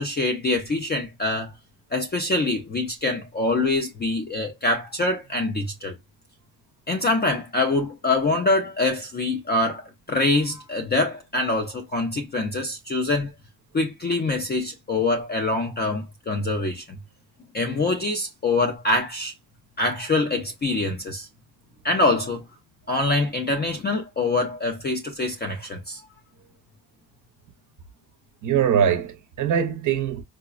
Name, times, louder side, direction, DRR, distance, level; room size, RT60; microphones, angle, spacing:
voice 1, 0.0-1.5 1.9-6.0 6.9-13.3 13.7-17.0 17.5-19.3 19.8-21.3 21.8-22.4 22.9-26.0, left 2 dB, 25° left, 0.3 m, -24 dB
voice 2, 28.4-30.2, right 8 dB, 45° right, 0.5 m, -22 dB
4.7 x 2.0 x 2.3 m
cardioid pair, 175°, 45 cm